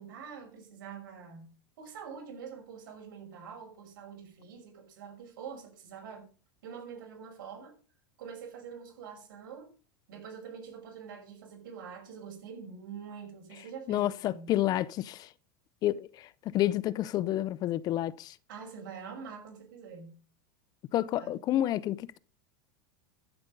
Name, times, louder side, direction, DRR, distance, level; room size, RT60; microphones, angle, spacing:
voice 1, 0.0-1.5 1.8-6.3 6.6-7.7 8.2-9.7 10.1-14.5 18.5-20.2 21.2-21.4, right 6 dB, 75° right, 5.6 m, -45 dB
voice 2, 13.9-15.3 15.8-18.3 20.9-22.2, left 13 dB, 35° left, 0.5 m, -29 dB
14.0 x 7.9 x 5.3 m
supercardioid pair, 130°, 11 cm